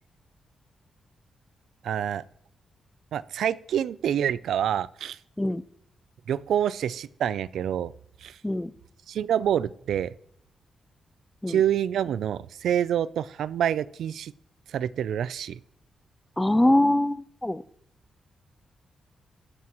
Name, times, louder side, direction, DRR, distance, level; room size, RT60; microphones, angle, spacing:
voice 1, 1.8-2.2 3.1-5.2 6.3-7.9 8.2-8.4 9.1-10.1 11.5-14.3 14.7-15.6, right 9 dB, 85° right, 18 dB, 0.4 m, -27 dB
voice 2, 16.4-17.6, left 1 dB, 10° left, 16 dB, 0.5 m, -23 dB
21.5 x 9.4 x 3.0 m, 0.74 s
cardioid pair, 105°, 0 cm